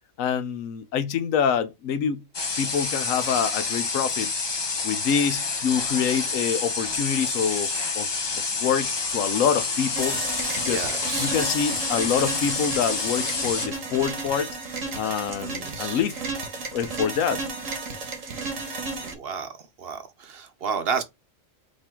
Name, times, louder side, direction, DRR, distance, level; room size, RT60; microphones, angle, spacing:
voice 1, 0.2-2.2 2.6-4.3 4.8-7.7 7.9-8.1 8.6-10.2 10.6-10.8 11.2-14.5 14.9-16.2 16.7-17.4, left 7 dB, 90° left, 1.1 m, -26 dB
sound 1, 2.3-13.7, left 4 dB, 35° left, 0.4 m, -28 dB
sound 2, 9.9-19.1, right 3 dB, 90° right, 1.5 m, -33 dB
voice 2, 10.7-11.3 15.4-16.0 19.0-21.0, right 6 dB, 55° right, 0.9 m, -32 dB
5.1 x 2.8 x 3.6 m
omnidirectional pair, 1.3 m